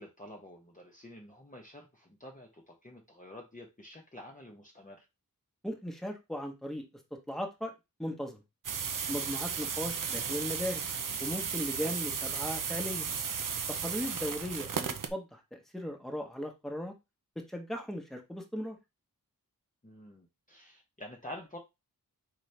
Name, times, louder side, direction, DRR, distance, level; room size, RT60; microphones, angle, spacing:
voice 1, 0.0-5.1 11.8-12.0 19.8-21.6, left 1 dB, 20° left, 0 dB, 0.9 m, -48 dB
voice 2, 5.6-6.8 7.3-7.7 8.0-8.4 9.1-10.8 11.2-13.1 13.8-16.9 17.5-18.8, equal, ahead, 2 dB, 1.1 m, -37 dB
sound 1, 8.6-15.1, right 6 dB, 60° right, 0.6 m, -35 dB
4.2 x 3.8 x 3.3 m, 0.24 s
wide cardioid pair, 90°, 36 cm